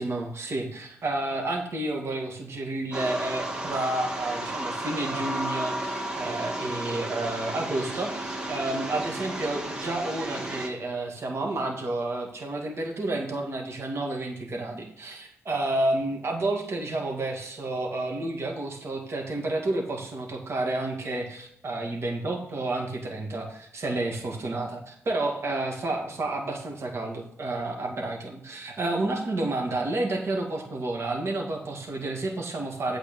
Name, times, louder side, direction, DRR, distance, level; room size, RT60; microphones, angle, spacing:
voice 1, 0.0-33.0, right 2 dB, 55° right, 1 dB, 2.2 m, -30 dB
sound 1, 2.9-10.7, right 1 dB, 20° right, 2.1 m, -33 dB
8.7 x 4.8 x 7.0 m, 0.72 s
cardioid pair, 75°, 5 cm